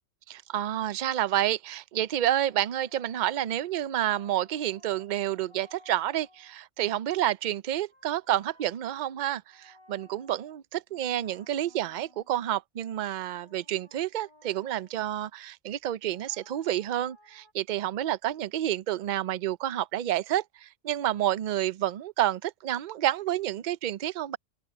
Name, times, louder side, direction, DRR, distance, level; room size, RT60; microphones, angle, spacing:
voice 1, 0.3-24.4, right 12 dB, 55° right, 0.5 m, -29 dB
sound 1, 2.3-6.6 7.7-10.6 10.9-12.5 13.1-15.0 16.0-17.5, left 1 dB, 20° left, 4.1 m, -60 dB
open air
omnidirectional pair, 1.3 m